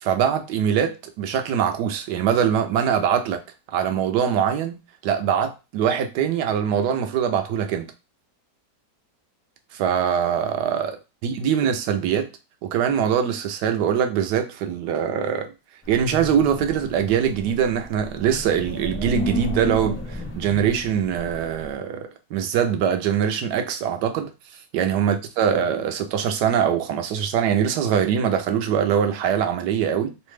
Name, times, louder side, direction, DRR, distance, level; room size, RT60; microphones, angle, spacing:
voice 1, 0.0-3.4 3.7-7.9 9.7-11.0 11.2-12.3 12.6-15.5 15.9-24.3 24.7-30.1, right 8 dB, 75° right, 1.1 m, -23 dB
Wind, 15.8-21.7, left 1 dB, 15° left, 0.4 m, -33 dB
3.2 x 2.1 x 3.1 m
omnidirectional pair, 1.9 m